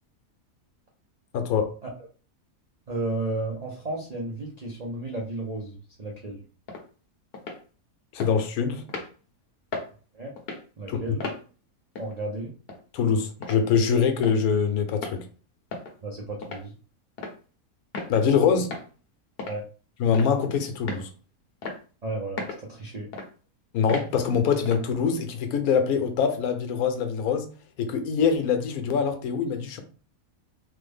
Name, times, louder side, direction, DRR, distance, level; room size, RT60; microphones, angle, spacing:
voice 1, 1.3-1.7 8.1-8.8 10.9-11.0 12.9-15.3 18.1-18.7 20.0-21.1 23.7-27.5 27.8-29.8, left 6 dB, 80° left, 1.1 m, -24 dB
voice 2, 2.9-6.4 10.1-10.3 10.8-11.2 12.0-12.5 16.0-16.7 19.4-19.6 22.0-23.1, right 2 dB, 90° right, 0.3 m, -33 dB
sound 1, 6.7-6.8 7.3-7.6 8.2-8.3 8.9-9.1 9.7-9.9 10.4-10.6 11.2-11.4 12.0-12.1 12.7-12.8 13.4-13.6 14.2-14.4 14.9-15.2 15.7-15.9 16.4-16.6 17.2-17.4 17.9-18.1 18.7-18.9 19.4-19.6 20.1-20.4 20.9-21.1 21.6-21.8 22.4-22.6 23.1-23.3 23.9-24.1 24.7-24.9, left 3 dB, 55° left, 0.7 m, -35 dB
3.3 x 2.1 x 3.4 m
omnidirectional pair, 1.6 m